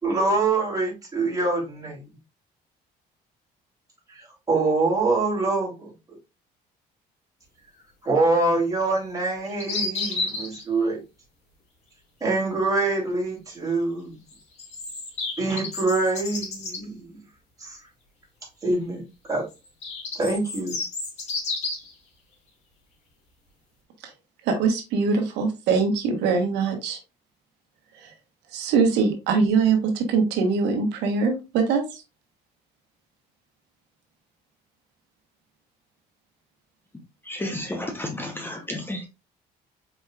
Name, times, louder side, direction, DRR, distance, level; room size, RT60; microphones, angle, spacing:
voice 1, 0.0-2.0 4.1-5.9 8.0-11.0 12.2-14.1 15.4-17.1 17.6-17.8 18.6-19.0 19.3-19.4 20.1-20.7, right 3 dB, 20° right, 2.9 m, -24 dB
sound 1, 9.2-10.6 14.3-16.8 19.5-21.9, left 3 dB, 40° left, 2.1 m, -31 dB
voice 2, 24.4-27.0 28.0-28.1 28.5-32.0, right 5 dB, 90° right, 1.1 m, -22 dB
voice 3, 37.3-39.1, left 1 dB, 15° left, 0.8 m, -32 dB
4.6 x 4.4 x 2.3 m
cardioid pair, 110°, 17 cm